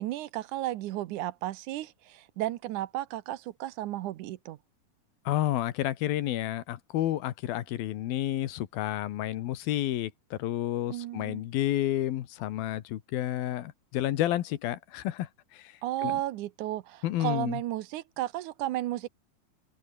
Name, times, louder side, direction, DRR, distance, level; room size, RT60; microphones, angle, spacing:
voice 1, 0.0-4.6 10.9-11.4 15.8-19.1, right 15 dB, 70° right, 2.0 m, -33 dB
voice 2, 5.3-15.3 16.0-16.1 17.0-17.6, left 13 dB, 80° left, 3.1 m, -30 dB
open air
omnidirectional pair, 4.2 m